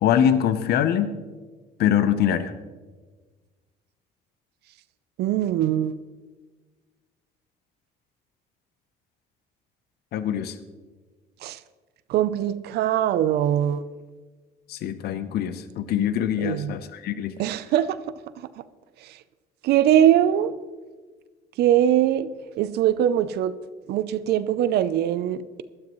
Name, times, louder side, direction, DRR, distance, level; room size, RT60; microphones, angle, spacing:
voice 1, 0.0-1.1 1.8-2.5 10.1-10.6 14.7-17.3, left 9 dB, 70° left, 12 dB, 0.8 m, -23 dB
voice 2, 5.2-5.9 11.4-11.6 12.1-13.8 16.4-16.7 17.4-18.0 19.0-19.2 19.6-20.5 21.6-22.3 22.6-23.5 23.9-25.6, right 11 dB, 75° right, 14 dB, 0.6 m, -22 dB
16.5 x 12.0 x 3.1 m, 1.4 s
cardioid pair, 110°, 17 cm